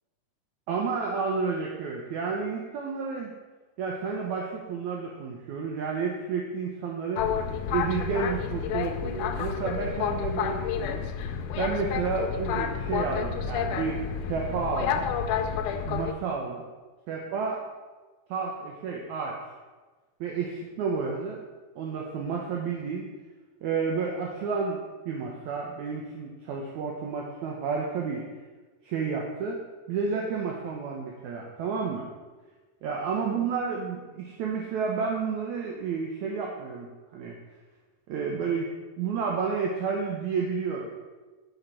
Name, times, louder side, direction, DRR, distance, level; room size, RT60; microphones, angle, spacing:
voice 1, 0.7-3.3 3.8-7.3 7.7-11.0 11.6-15.1 15.9-16.6 17.1-17.6 18.3-19.4 20.2-21.4 21.8-23.1 23.6-28.3 28.8-29.6 29.9-32.1 32.8-37.4 38.1-38.7 39.0-40.9, right 5 dB, 70° right, -1 dB, 2.0 m, -31 dB
Boat Water vehicle, 7.2-16.1, left 7 dB, 80° left, 1.9 m, -30 dB
10.5 x 5.7 x 4.3 m, 1.3 s
omnidirectional pair, 3.9 m